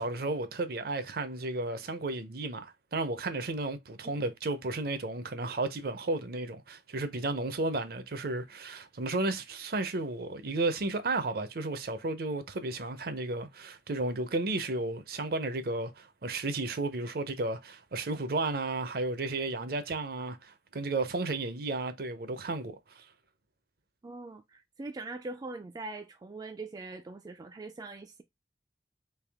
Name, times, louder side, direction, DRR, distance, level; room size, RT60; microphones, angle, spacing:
voice 1, 0.0-23.0, right 2 dB, 55° right, 0.6 m, -33 dB
voice 2, 24.0-28.2, right 3 dB, 20° right, 0.3 m, -42 dB
3.5 x 2.7 x 3.4 m
head